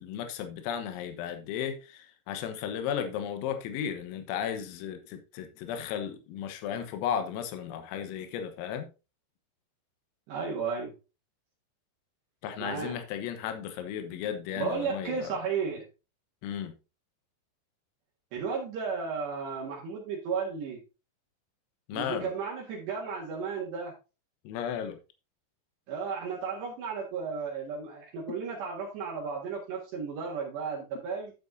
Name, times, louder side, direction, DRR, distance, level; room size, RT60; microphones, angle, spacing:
voice 1, 0.0-8.9 12.4-15.3 16.4-16.7 21.9-22.3 24.5-25.0, left 8 dB, 85° left, 3.9 m, -35 dB
voice 2, 10.3-10.9 12.6-13.0 14.6-15.9 18.3-20.8 21.9-23.9 25.9-31.3, right 5 dB, 65° right, 3.6 m, -34 dB
12.0 x 7.4 x 2.7 m
omnidirectional pair, 5.9 m